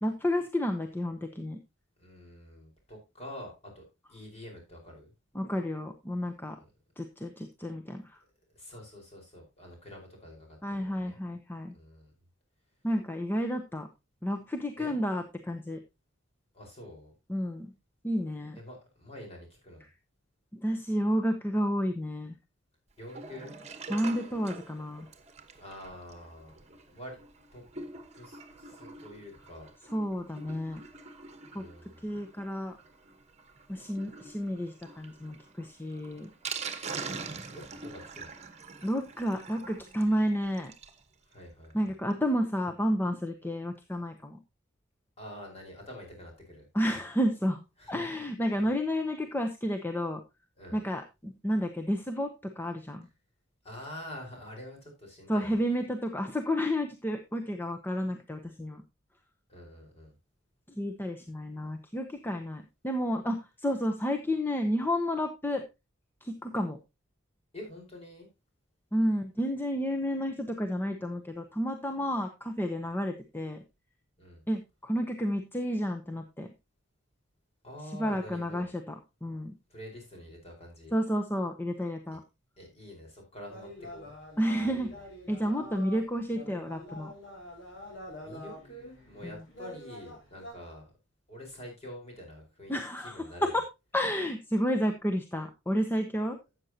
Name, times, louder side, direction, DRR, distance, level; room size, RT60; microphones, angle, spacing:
voice 1, 0.0-1.6 5.3-6.6 7.0-8.2 10.6-11.7 12.8-13.9 14.2-15.8 17.3-17.7 18.0-18.6 20.5-22.4 23.9-25.1 29.9-30.8 31.5-31.6 32.0-32.8 33.7-36.3 38.8-40.7 41.7-44.4 46.7-50.2 50.7-53.1 55.3-58.8 60.7-65.6 66.2-66.8 68.9-73.6 74.5-76.5 77.9-78.9 79.2-79.5 80.9-82.2 84.4-84.9 85.3-87.1 89.2-89.4 92.7-93.2 93.5-93.6 93.9-96.4, equal, 10° left, 5 dB, 0.8 m, -31 dB
voice 2, 2.0-5.1 6.6-6.7 8.5-11.2 11.7-12.1 14.8-14.9 16.5-17.1 18.5-19.9 23.0-23.5 25.6-26.6 26.9-27.2 27.5-27.6 28.1-29.7 31.5-32.1 37.5-38.3 41.2-41.9 45.2-46.7 47.8-48.1 48.5-48.7 50.6-50.8 53.6-55.6 59.5-60.1 67.5-68.3 74.2-74.4 77.6-78.7 79.7-80.9 82.6-84.1 84.6-85.0 88.2-90.9 91.3-92.8 93.0-93.5, left 1 dB, 35° left, 1 dB, 4.8 m, -46 dB
Sink (filling or washing), 23.0-41.0 41.4-41.5 41.6-41.7 42.1-42.2, right 4 dB, 35° right, 1.2 m, -45 dB
sound 1, 83.5-90.5, equal, 70° left, 5.5 m, -46 dB
13.0 x 8.0 x 2.8 m, 0.24 s
head